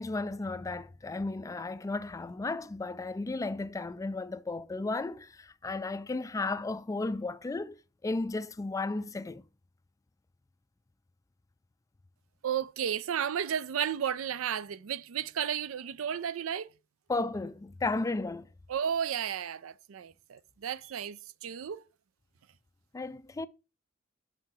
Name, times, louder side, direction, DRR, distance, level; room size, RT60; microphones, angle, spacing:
voice 1, 0.0-7.8 8.0-9.4 17.1-18.5 22.9-23.5, left 3 dB, 15° left, 0.3 m, -34 dB
voice 2, 12.4-16.7 18.7-21.8, right 8 dB, 80° right, 0.4 m, -33 dB
5.7 x 5.6 x 4.8 m
head